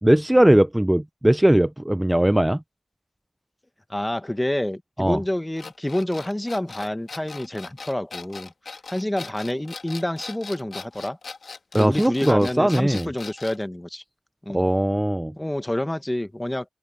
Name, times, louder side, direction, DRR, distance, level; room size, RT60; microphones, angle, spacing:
voice 1, 0.0-2.6 5.0-5.2 11.7-13.1 14.5-15.3, right 1 dB, 10° right, 0.5 m, -19 dB
voice 2, 3.9-11.2 11.7-14.0 14.4-14.7 15.4-16.6, left 1 dB, 15° left, 1.5 m, -28 dB
sound 1, 5.6-13.6, left 4 dB, 70° left, 2.3 m, -39 dB
cardioid pair, 55°, 0 cm